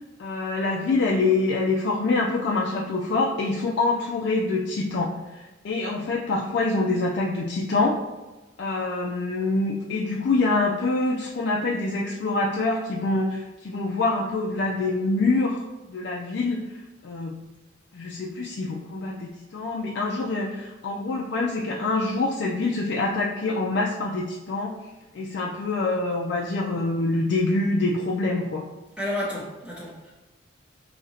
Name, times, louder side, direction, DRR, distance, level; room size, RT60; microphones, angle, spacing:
voice 1, 0.2-8.0 8.6-17.4 17.9-24.8 25.1-28.6, left 3 dB, 60° left, -2 dB, 0.4 m, -25 dB
voice 2, 29.0-30.1, left 1 dB, 5° right, -7 dB, 0.6 m, -31 dB
4.9 x 2.8 x 2.7 m, 1.1 s
head